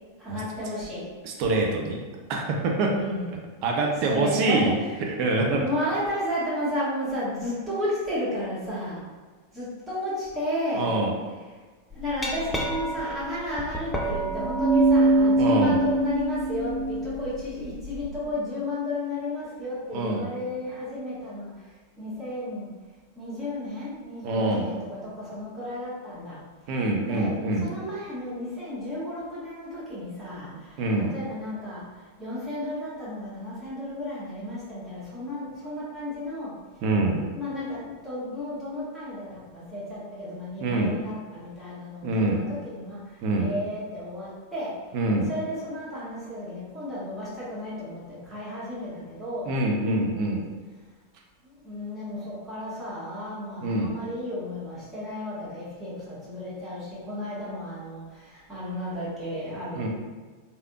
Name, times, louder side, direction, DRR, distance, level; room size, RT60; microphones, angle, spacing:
voice 1, 0.2-1.1 2.9-3.4 4.1-4.7 5.4-9.1 9.5-10.9 11.9-21.5 22.0-22.7 23.1-26.4 27.1-36.5 37.3-44.8 45.2-49.5 51.6-59.9, left 1 dB, 10° right, -9 dB, 1.5 m, -33 dB
voice 2, 1.2-2.0 2.3-2.9 3.6-4.8 5.1-5.7 10.7-11.2 15.4-15.8 19.9-20.3 24.2-24.7 26.7-27.7 30.8-31.1 36.8-37.2 40.6-41.0 42.0-42.4 43.2-43.5 44.9-45.3 49.5-50.5 53.6-54.0 59.7-59.9, right 2 dB, 45° right, 0 dB, 0.5 m, -25 dB
Glass, 11.9-18.1, right 2 dB, 10° left, 0.5 m, -24 dB
3.3 x 2.8 x 2.3 m, 1.4 s
figure-of-eight pair, 90°, 0 cm